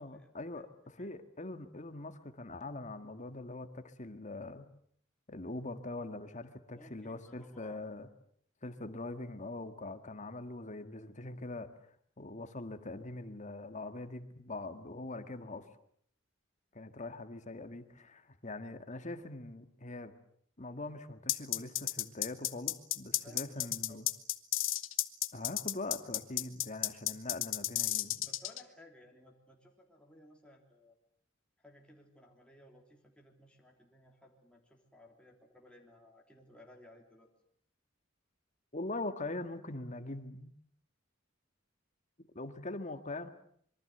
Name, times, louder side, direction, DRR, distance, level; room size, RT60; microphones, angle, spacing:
voice 1, 0.0-4.6 5.3-8.1 8.6-11.7 12.2-15.7 16.7-20.1 20.6-24.1 25.3-28.2 38.7-40.5 42.3-43.3, left 2 dB, 40° left, 9 dB, 1.8 m, -42 dB
voice 2, 6.7-7.8 23.2-24.0 28.3-30.9 31.6-37.3, left 1 dB, 5° left, 0 dB, 3.3 m, -58 dB
sound 1, 21.3-28.6, left 15 dB, 75° left, 1.4 m, -32 dB
26.0 x 23.5 x 8.0 m, 0.65 s
head